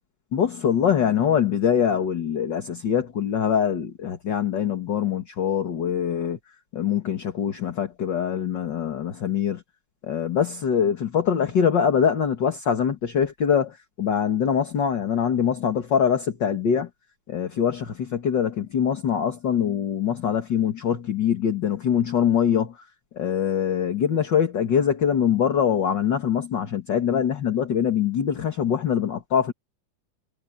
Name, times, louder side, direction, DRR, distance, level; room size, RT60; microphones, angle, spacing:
voice 1, 0.3-6.4 6.7-9.6 10.0-16.9 17.3-22.8 23.1-29.5, left 8 dB, 40° left, 2.0 m, -23 dB
omnidirectional pair, 3.8 m